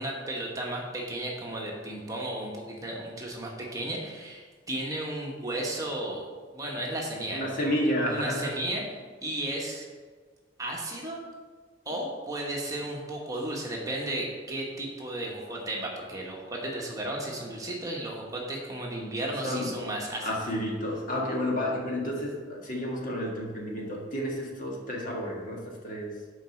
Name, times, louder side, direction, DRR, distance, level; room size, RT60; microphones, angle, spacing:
voice 1, 0.0-6.2 6.5-7.6 8.1-8.8 9.2-9.9 10.6-11.2 11.8-20.3, right 1 dB, 20° right, -2 dB, 1.3 m, -34 dB
voice 2, 7.3-8.6 19.4-19.8 20.2-26.1, equal, 45° left, -2 dB, 1.7 m, -31 dB
7.6 x 4.8 x 6.4 m, 1.5 s
head